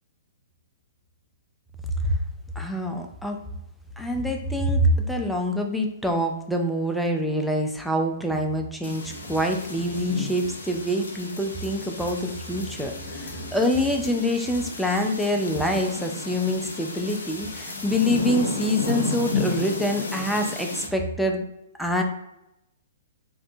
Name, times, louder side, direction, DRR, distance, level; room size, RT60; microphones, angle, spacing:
voice 1, 2.6-3.4 4.0-21.5 21.8-22.0, equal, ahead, 2 dB, 0.3 m, -25 dB
sound 1, 8.8-20.9, left 3 dB, 70° left, 0.5 m, -32 dB
2.5 x 2.1 x 2.6 m, 0.87 s
figure-of-eight pair, 115°, 0 cm